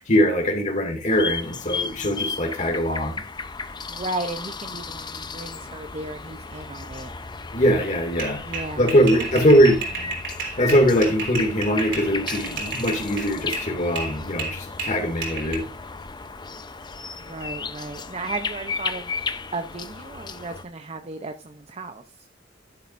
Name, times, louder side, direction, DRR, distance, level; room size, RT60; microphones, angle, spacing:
voice 1, 0.0-3.2 7.5-8.4 8.8-9.8 10.6-15.6, equal, 40° left, 2.3 m, -21 dB
sound 1, 1.1-20.6, left 4 dB, 25° left, 0.7 m, -34 dB
voice 2, 3.6-7.1 8.4-9.4 17.2-22.0, right 2 dB, 35° right, 0.7 m, -35 dB
sound 2, 8.2-13.7 14.0-15.6, right 3 dB, 70° right, 3.8 m, -32 dB
11.5 x 10.5 x 2.6 m
head